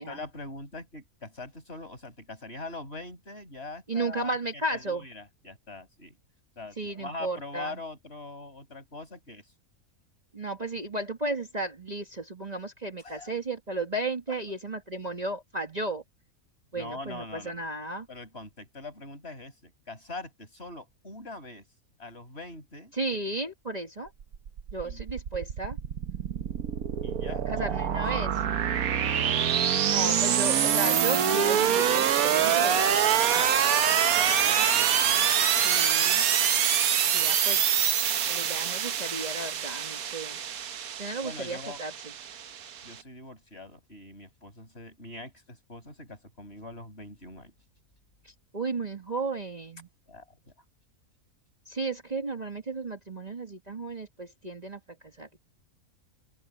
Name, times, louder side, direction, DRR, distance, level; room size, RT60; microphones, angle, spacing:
voice 1, 0.0-6.2 6.6-9.5 13.0-13.3 16.7-17.6 18.1-21.6 22.0-22.9 24.8-25.1 27.0-28.6 34.1-35.0 41.2-41.8 42.8-47.5 50.1-50.5, left 2 dB, 45° left, 7.1 m, -43 dB
voice 2, 3.9-5.1 6.8-7.8 10.3-16.0 16.7-18.1 22.9-24.1 24.7-25.8 27.5-28.3 29.9-33.7 35.5-36.3 37.1-37.7 38.3-40.4 41.0-41.9 48.2-49.9 51.7-55.4, right 2 dB, 30° right, 1.8 m, -34 dB
sound 1, 24.2-42.9, right 9 dB, 80° right, 1.4 m, -25 dB
open air
omnidirectional pair, 1.5 m